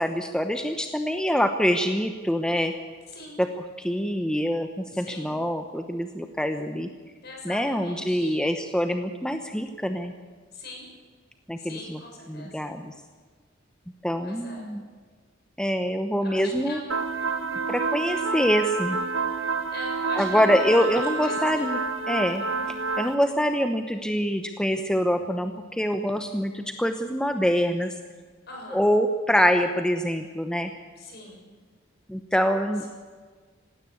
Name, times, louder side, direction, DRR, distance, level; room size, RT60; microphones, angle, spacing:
voice 1, 0.0-2.7 3.4-3.5 3.8-6.9 7.4-10.1 11.5-12.0 12.3-12.9 14.0-14.8 15.6-16.8 17.7-19.0 20.2-21.8 22.1-22.4 23.0-27.9 28.7-30.7 32.1-32.9, equal, 5° left, 6 dB, 0.9 m, -25 dB
voice 2, 4.9-5.3 7.2-8.4 10.5-10.9 11.6-12.7 14.2-14.7 16.2-17.6 19.7-20.9 21.1-21.6 22.5-22.7 28.5-28.9 31.0-31.4, left 2 dB, 55° left, 1 dB, 6.9 m, -42 dB
sound 1, 16.9-23.1, right 4 dB, 70° right, 1.2 m, -28 dB
19.0 x 17.0 x 8.6 m, 1.5 s
head